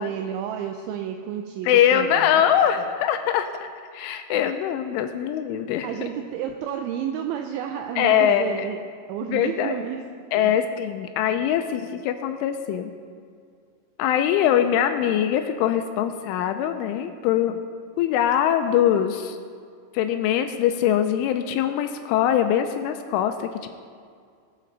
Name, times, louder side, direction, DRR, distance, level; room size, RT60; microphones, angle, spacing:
voice 1, 0.0-2.4 2.7-2.8 5.8-8.8 9.1-10.5, right 9 dB, 85° right, 4 dB, 2.7 m, -31 dB
voice 2, 1.6-5.9 8.0-8.7 9.2-9.8 10.3-12.9 14.0-17.6 18.0-19.4 19.9-23.7, left 10 dB, 85° left, 7 dB, 2.9 m, -22 dB
20.5 x 7.6 x 4.0 m, 2.1 s
omnidirectional pair, 5.8 m